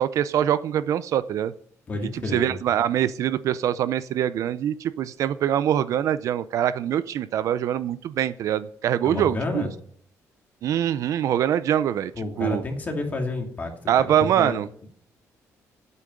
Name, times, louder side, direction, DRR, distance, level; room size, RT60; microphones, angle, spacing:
voice 1, 0.0-1.5 2.1-9.6 10.6-12.1 12.4-12.6 13.9-14.7, right 10 dB, 65° right, 15 dB, 0.5 m, -24 dB
voice 2, 1.9-2.5 9.0-9.7 12.1-13.7 14.0-14.9, left 2 dB, 30° left, 2 dB, 2.4 m, -30 dB
8.8 x 8.4 x 7.8 m, 0.62 s
cardioid pair, 150°, 6 cm